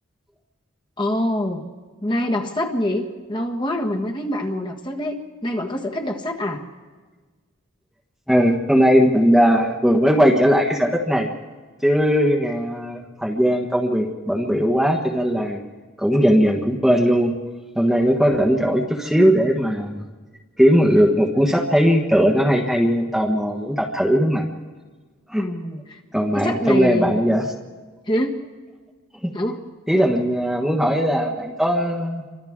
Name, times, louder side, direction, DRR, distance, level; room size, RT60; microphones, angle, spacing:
voice 1, 1.0-1.6 2.0-6.6 25.4-26.0 26.3-27.2 28.1-28.4 29.3-29.6, left 1 dB, 25° left, 1 dB, 1.5 m, -25 dB
voice 2, 8.3-11.3 11.8-15.6 16.0-17.3 17.7-20.0 20.6-24.4 25.3-25.4 26.1-27.4 29.2-29.3 29.9-32.2, equal, ahead, 0 dB, 1.3 m, -18 dB
30.0 x 24.5 x 3.7 m, 1.4 s
head